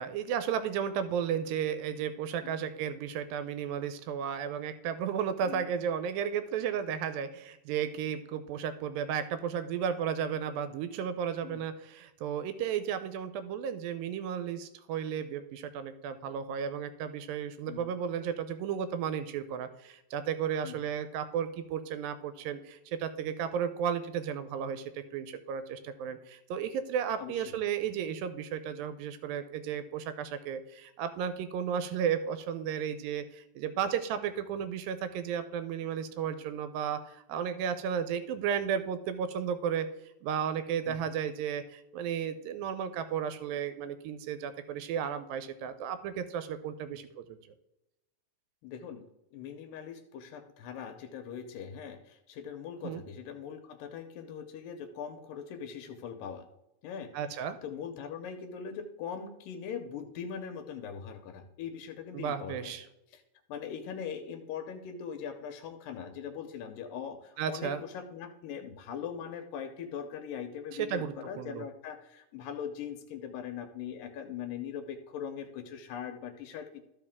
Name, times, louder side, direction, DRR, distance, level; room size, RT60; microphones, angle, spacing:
voice 1, 0.0-39.9 40.2-47.4 52.8-53.0 57.1-57.6 62.1-62.9 67.4-67.8 70.8-71.7, right 8 dB, 85° right, 11 dB, 2.3 m, -34 dB
voice 2, 27.2-27.5 40.9-41.1 48.6-49.0 49.3-56.5 56.8-62.7 63.1-63.2 63.5-76.8, left 7 dB, 85° left, 6 dB, 2.3 m, -41 dB
13.5 x 5.1 x 3.6 m, 0.90 s
omnidirectional pair, 4.1 m